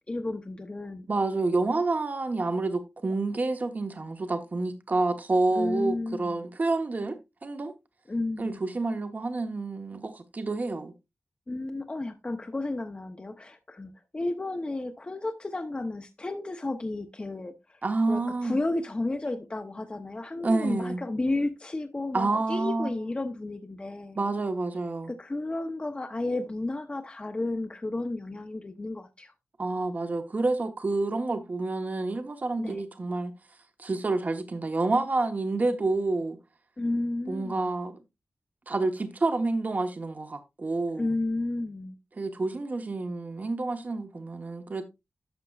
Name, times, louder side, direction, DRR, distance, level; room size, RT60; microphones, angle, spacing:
voice 1, 0.1-1.1 5.5-6.4 8.1-8.6 11.5-17.8 18.1-24.2 25.1-29.3 32.6-32.8 36.8-37.8 40.9-42.0, left 2 dB, 25° left, 0.7 m, -32 dB
voice 2, 1.1-7.1 7.4-7.7 8.4-10.9 17.8-18.6 20.4-21.0 22.1-22.9 24.2-25.1 29.6-33.3 33.8-36.4 37.3-37.9 38.7-41.1 42.2-44.8, right 3 dB, 40° right, 1.0 m, -28 dB
11.5 x 6.7 x 2.4 m
wide cardioid pair, 110°, 4 cm